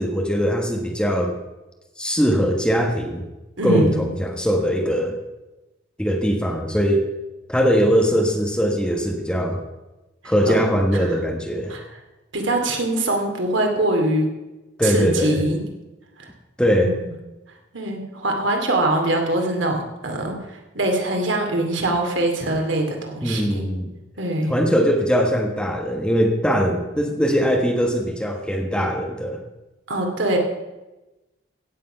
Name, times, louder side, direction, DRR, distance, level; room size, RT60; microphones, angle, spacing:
voice 1, 0.0-1.4 2.0-3.2 3.6-5.1 6.0-7.1 7.5-9.6 10.2-11.7 14.8-15.4 16.6-16.9 23.2-23.9 24.5-29.4, equal, 5° left, 2 dB, 1.3 m, -21 dB
voice 2, 3.6-4.1 10.2-10.5 11.7-11.8 12.3-14.3 14.8-15.7 16.2-16.3 16.7-17.0 17.7-20.3 20.7-23.7 24.2-24.5 29.9-30.4, right 1 dB, 75° right, 2 dB, 2.5 m, -23 dB
16.0 x 8.2 x 5.6 m, 1.0 s
head